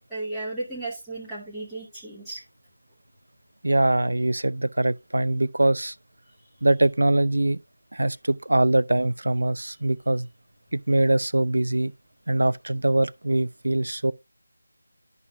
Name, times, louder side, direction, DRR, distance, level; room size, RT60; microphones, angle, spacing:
voice 1, 0.1-2.4, right 2 dB, ahead, 0.9 m, -34 dB
voice 2, 3.6-5.9 6.6-7.6 7.9-10.3 10.7-11.9 12.3-14.1, right 2 dB, 60° right, 0.4 m, -23 dB
11.0 x 5.8 x 2.5 m
figure-of-eight pair, 165°, 0 cm